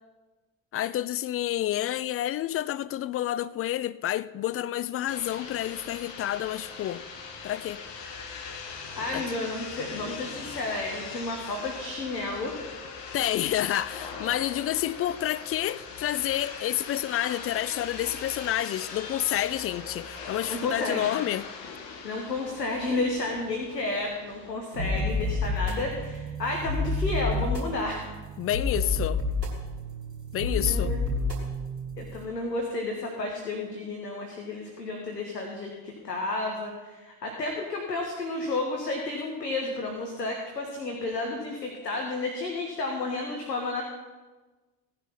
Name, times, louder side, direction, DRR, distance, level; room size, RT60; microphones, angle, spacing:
voice 1, 0.7-7.0 7.4-7.8 9.1-9.2 13.1-21.5 28.4-29.2 30.3-30.9, left 13 dB, 30° left, 0.4 m, -29 dB
sound 1, 5.1-24.5, left 5 dB, 60° left, 2.2 m, -41 dB
voice 2, 9.0-12.6 20.5-21.1 22.0-28.1 30.6-31.0 32.0-43.8, left 2 dB, 85° left, 1.6 m, -32 dB
sound 2, 24.7-32.3, left 2 dB, 90° right, 2.0 m, -30 dB
16.5 x 10.5 x 5.6 m
figure-of-eight pair, 55°, 48 cm